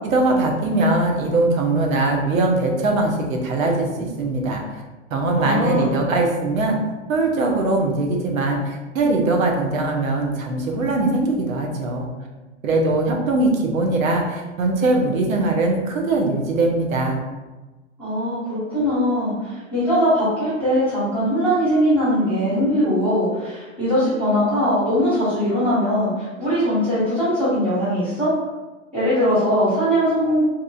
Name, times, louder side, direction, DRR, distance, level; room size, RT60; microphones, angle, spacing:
voice 1, 0.0-4.6 5.1-6.8 7.1-12.1 12.6-17.2, right 2 dB, 90° right, 1 dB, 0.7 m, -21 dB
voice 2, 5.4-5.9 18.0-28.3 28.9-30.4, equal, 5° left, -13 dB, 1.2 m, -20 dB
2.9 x 2.4 x 2.3 m, 1.2 s
hypercardioid pair, 125°, 40 cm